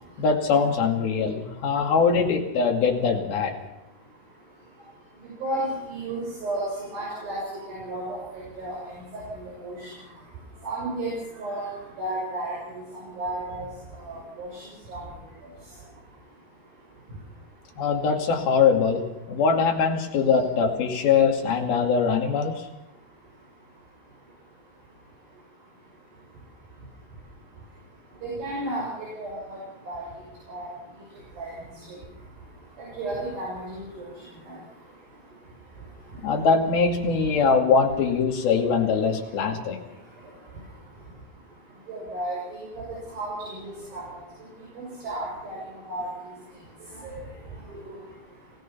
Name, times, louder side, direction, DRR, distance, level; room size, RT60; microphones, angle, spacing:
voice 1, 0.2-3.6 17.8-22.7 36.2-39.8, left 5 dB, 65° left, 2 dB, 4.2 m, -22 dB
voice 2, 5.4-6.6 6.9-7.4 7.7-8.0 8.3-8.8 9.6-9.9 10.6-11.1 11.4-11.7 12.0-12.8 13.2-13.7 14.0-14.6 14.9-15.0 28.2-28.8 29.2-29.6 29.9-30.0 30.5-30.7 31.4-31.5 33.0-34.0 41.9-42.4 43.2-44.0 44.8-45.6 45.9-46.1 47.1-47.2 47.7-47.8, right 1 dB, 60° right, -4 dB, 8.0 m, -32 dB
26.5 x 17.5 x 5.8 m, 0.88 s
omnidirectional pair, 4.7 m